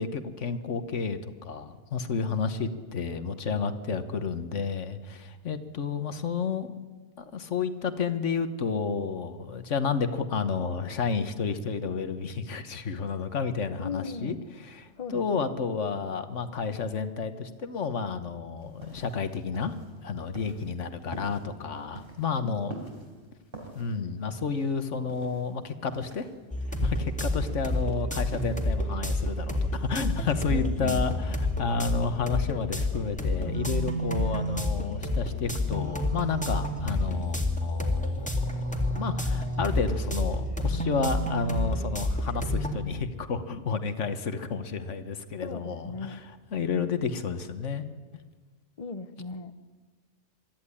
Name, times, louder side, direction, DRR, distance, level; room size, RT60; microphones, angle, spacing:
voice 1, 0.0-6.8 7.2-19.7 20.0-22.7 23.7-26.3 26.8-47.9, left 5 dB, 80° left, 10 dB, 1.5 m, -31 dB
voice 2, 13.8-14.4 15.0-15.5 22.4-22.6 30.5-31.1 45.4-46.2 48.8-49.6, left 4 dB, 35° left, 11 dB, 0.9 m, -37 dB
sound 1, 18.6-28.7, right 1 dB, 45° right, 4.2 m, -48 dB
sound 2, 26.5-42.7, left 1 dB, 5° left, 2.2 m, -29 dB
23.0 x 13.5 x 9.9 m, 1.4 s
omnidirectional pair, 1.2 m